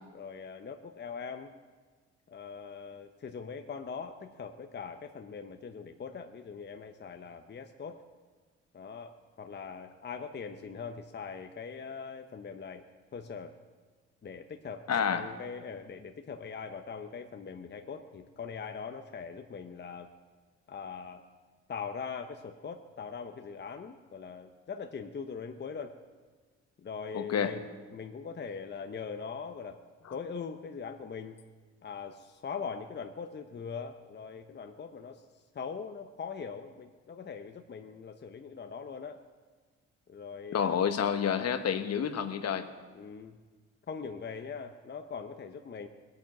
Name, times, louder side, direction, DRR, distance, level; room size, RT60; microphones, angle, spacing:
voice 1, 0.1-1.5 2.3-8.0 8.7-12.8 13.1-13.5 14.2-20.1 20.7-21.2 21.7-26.0 26.8-29.8 30.1-31.4 31.8-35.2 35.5-39.2 40.1-40.9 42.9-43.4 43.9-45.9, left 5 dB, 35° left, 6 dB, 0.8 m, -41 dB
voice 2, 14.9-15.3 27.1-27.6 30.0-30.1 40.5-42.7, left 7 dB, 55° left, 9 dB, 1.2 m, -29 dB
20.0 x 9.2 x 5.9 m, 1.4 s
cardioid pair, 90°, 30 cm